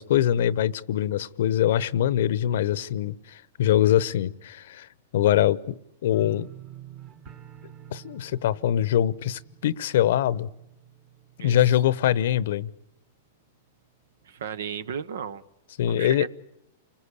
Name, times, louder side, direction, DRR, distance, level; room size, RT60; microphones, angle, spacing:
voice 1, 0.0-4.9 5.1-6.5 7.9-10.5 11.4-12.7 15.8-16.2, left 11 dB, 70° left, 19 dB, 0.9 m, -23 dB
sound 1, 6.1-13.0 13.3-13.8 14.2-14.3, right 11 dB, 35° right, 1.8 m, -49 dB
voice 2, 14.2-15.4 15.9-16.3, right 7 dB, 80° right, 15 dB, 1.2 m, -34 dB
29.5 x 20.5 x 8.4 m, 0.82 s
hypercardioid pair, 135°, 0 cm